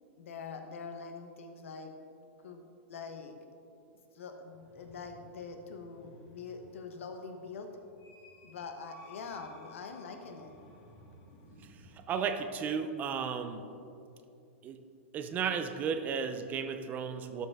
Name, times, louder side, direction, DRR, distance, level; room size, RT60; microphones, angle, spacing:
voice 1, 0.2-1.9 2.4-3.3 4.1-7.7 8.4-10.5, left 4 dB, 85° left, 5 dB, 1.1 m, -44 dB
sound 1, 4.5-12.4, left 1 dB, 40° left, 1.8 m, -57 dB
voice 2, 11.9-13.6 14.6-14.8 15.1-17.5, right 6 dB, 25° right, 8 dB, 0.5 m, -34 dB
12.5 x 5.6 x 3.6 m, 2.6 s
supercardioid pair, 145°, 7 cm